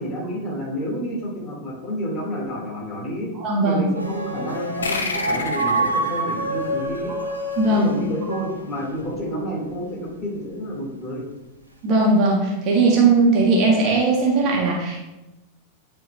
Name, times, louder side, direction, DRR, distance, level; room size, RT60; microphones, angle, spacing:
voice 1, 0.0-3.3 3.6-7.2 7.7-11.3, equal, 25° left, -4 dB, 2.4 m, -29 dB
voice 2, 3.4-3.8 7.1-7.2 7.6-7.9 11.8-15.0, right 3 dB, 35° right, -2 dB, 1.5 m, -18 dB
sound 1, 3.9-9.3, right 2 dB, 85° right, 0.9 m, -27 dB
sound 2, 4.8-7.9, left 3 dB, 70° left, 0.7 m, -31 dB
9.9 x 3.8 x 3.2 m, 1.0 s
figure-of-eight pair, 90°, 0 cm